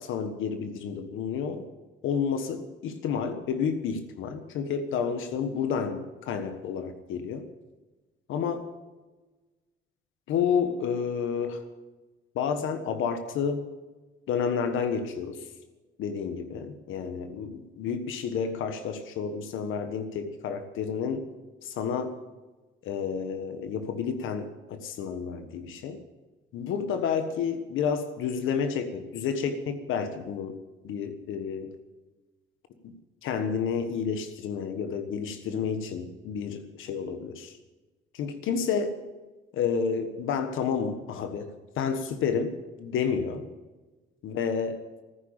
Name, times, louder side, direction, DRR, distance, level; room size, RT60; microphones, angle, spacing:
voice 1, 0.0-1.7 2.0-7.4 8.3-8.7 10.3-11.6 12.3-13.6 14.3-15.4 16.0-21.2 21.6-22.1 22.8-26.0 26.5-30.6 30.8-31.7 32.8-32.9 33.2-37.5 38.1-39.0 39.5-41.5 41.8-43.5 44.2-44.8, left 6 dB, 85° left, 8 dB, 1.4 m, -30 dB
14.5 x 10.0 x 8.9 m, 1.2 s
cardioid pair, 90°, 20 cm